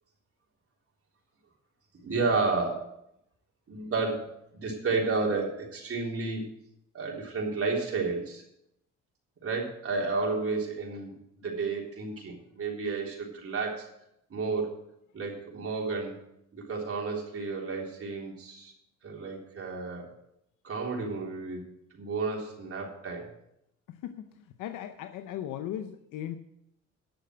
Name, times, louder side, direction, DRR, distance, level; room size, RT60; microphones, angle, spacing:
voice 1, 2.0-2.9 3.7-6.5 6.9-8.4 9.4-13.9 14.3-14.8 15.1-16.2 16.5-18.7 19.0-20.1 20.6-21.6 21.9-23.3, right 4 dB, 50° right, -1 dB, 3.7 m, -31 dB
voice 2, 23.9-26.4, left 11 dB, 90° left, 8 dB, 0.7 m, -38 dB
10.5 x 6.9 x 7.8 m, 0.78 s
cardioid pair, 90°, 30 cm